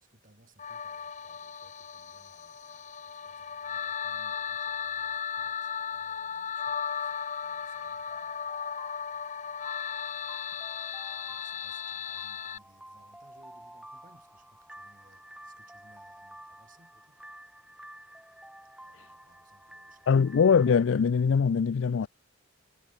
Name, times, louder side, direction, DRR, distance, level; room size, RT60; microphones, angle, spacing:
voice 1, 0.0-8.4 11.2-17.2 18.8-20.2, right 2 dB, 40° right, 5.8 m, -64 dB
sound 1, 0.6-12.6, left 7 dB, 35° left, 1.0 m, -36 dB
sound 2, 7.6-20.8, right 1 dB, 5° right, 2.8 m, -51 dB
voice 2, 20.1-22.1, left 6 dB, 65° left, 0.4 m, -22 dB
head